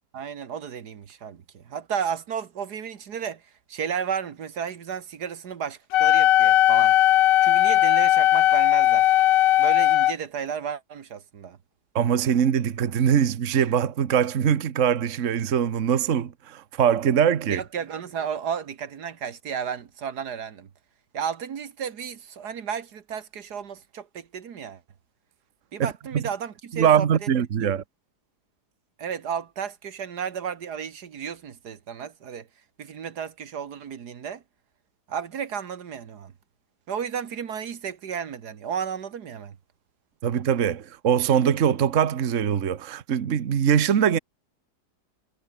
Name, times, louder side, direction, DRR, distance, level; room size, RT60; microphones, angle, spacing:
voice 1, 0.1-3.4 3.7-7.0 7.4-9.1 9.6-11.6 17.4-20.7 21.1-24.8 25.7-27.3 27.6-27.7 29.0-32.5 32.8-34.4 35.1-36.3 36.9-39.6, right 7 dB, 75° right, 1.9 m, -33 dB
Wind instrument woodwind instrument, 5.9-10.1, left 14 dB, 65° left, 0.9 m, -18 dB
voice 2, 11.9-17.6 25.8-26.2 26.7-27.8 40.2-44.2, right 8 dB, 50° right, 1.4 m, -22 dB
omnidirectional pair, 1.8 m